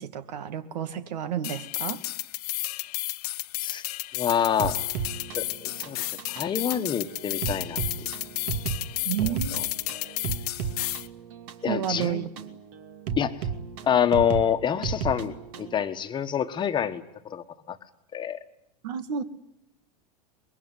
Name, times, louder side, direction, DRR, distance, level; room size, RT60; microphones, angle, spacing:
voice 1, 0.0-2.1 9.0-9.6 11.7-12.3 18.8-19.2, right 9 dB, 80° right, 12 dB, 2.4 m, -30 dB
sound 1, 1.4-11.1, left 18 dB, 65° left, 1.2 m, -33 dB
voice 2, 4.1-4.8 5.3-6.0 6.3-7.8 11.6-12.3 13.2-13.3 13.8-17.8 18.1-18.4, left 8 dB, 20° left, 8 dB, 1.4 m, -27 dB
sound 2, 4.6-15.8, right 7 dB, 55° right, 2.6 m, -34 dB
24.5 x 22.0 x 9.8 m, 0.79 s
supercardioid pair, 140°, 21 cm